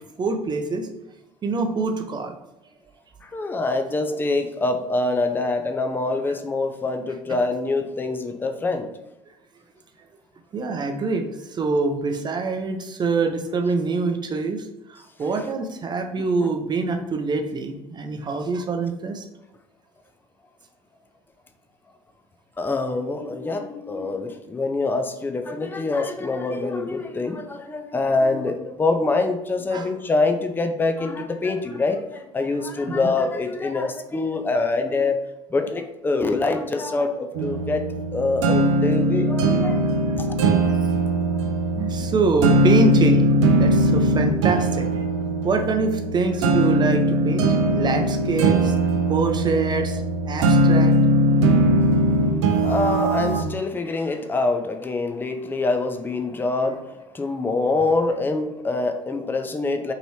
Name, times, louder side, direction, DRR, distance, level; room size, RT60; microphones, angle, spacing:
voice 1, 0.2-0.9 1.4-2.4 6.3-6.4 10.5-19.2 29.7-30.0 32.5-33.1 41.7-45.0 45.4-48.7 49.1-51.0, right 4 dB, 25° right, 5 dB, 0.7 m, -25 dB
voice 2, 3.3-8.9 10.7-10.8 22.6-35.2 35.5-37.8 38.1-39.8 40.2-40.3 52.6-59.9, left 3 dB, 15° left, 6 dB, 0.5 m, -25 dB
sound 1, 37.3-53.4, right 1 dB, 65° right, 0.6 m, -20 dB
5.3 x 3.0 x 3.2 m, 0.93 s
figure-of-eight pair, 65°, 16 cm